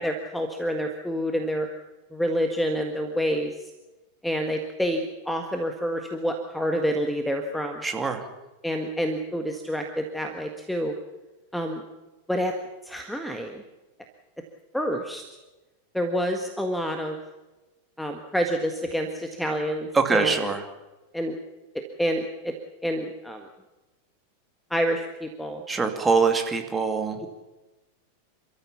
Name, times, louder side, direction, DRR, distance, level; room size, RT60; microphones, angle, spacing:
voice 1, 0.0-1.7 2.1-3.5 4.2-7.8 8.6-10.9 11.5-11.8 12.3-12.5 12.8-13.6 14.7-15.2 15.9-17.2 18.0-20.4 21.1-21.4 22.0-22.5 22.8-23.5 24.7-25.6, equal, 5° left, 5 dB, 1.7 m, -28 dB
voice 2, 7.8-8.2 19.9-20.6 25.7-27.2, right 4 dB, 15° right, 4 dB, 2.7 m, -23 dB
28.5 x 14.0 x 7.1 m, 1.1 s
figure-of-eight pair, 90°, 0 cm